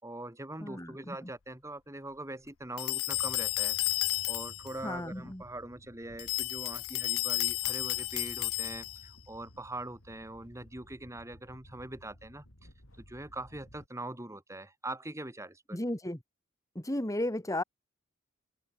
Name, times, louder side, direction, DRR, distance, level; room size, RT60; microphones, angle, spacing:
voice 1, 0.0-3.8 4.3-12.5 13.0-15.8, right 1 dB, 15° right, 2.6 m, -42 dB
voice 2, 0.6-1.3 4.8-5.4 15.7-16.2 16.8-17.6, left 1 dB, 15° left, 2.0 m, -34 dB
sound 1, 2.8-4.7 6.2-9.1, left 18 dB, 80° left, 0.7 m, -32 dB
sound 2, 3.1-13.9, equal, 65° left, 6.8 m, -56 dB
open air
head